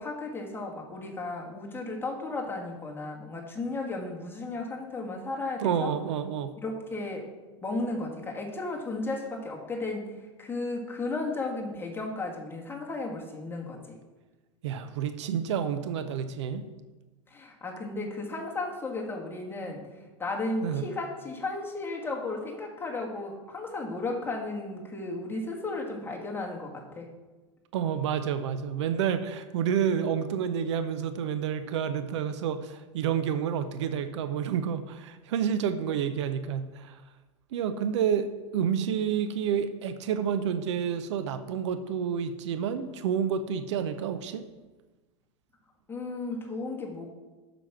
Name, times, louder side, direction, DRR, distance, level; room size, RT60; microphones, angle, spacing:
voice 1, 0.0-5.9 6.6-7.3 7.6-14.0 17.3-27.1 45.9-47.1, left 2 dB, 15° left, -1 dB, 2.1 m, -34 dB
voice 2, 5.6-6.5 14.6-16.7 20.6-20.8 27.7-37.0 37.5-38.3 38.5-44.4, right 8 dB, 65° right, 10 dB, 0.7 m, -29 dB
8.0 x 6.2 x 5.9 m, 1.2 s
hypercardioid pair, 95°, 16 cm